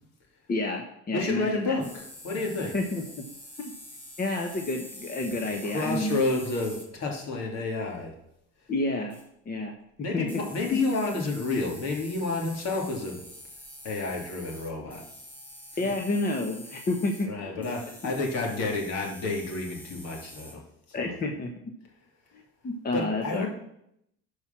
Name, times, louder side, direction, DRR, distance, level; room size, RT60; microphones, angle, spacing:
voice 1, 0.5-1.8 2.7-3.2 3.6-3.7 4.2-6.2 8.7-9.1 9.5-10.3 10.7-10.8 15.8-17.7 18.0-18.1 20.9-21.5 22.3-23.5, left 2 dB, 30° left, 2 dB, 1.3 m, -30 dB
voice 2, 1.1-2.7 5.6-8.1 10.0-13.2 13.8-15.0 17.2-20.6 21.0-21.1 22.9-23.5, left 3 dB, 60° left, 0 dB, 2.9 m, -30 dB
sound 1, 1.8-6.9 9.1-9.2 10.3-17.3 17.6-20.5, left 1 dB, 5° left, 4.0 m, -46 dB
12.0 x 4.9 x 6.0 m, 0.77 s
supercardioid pair, 90°, 30 cm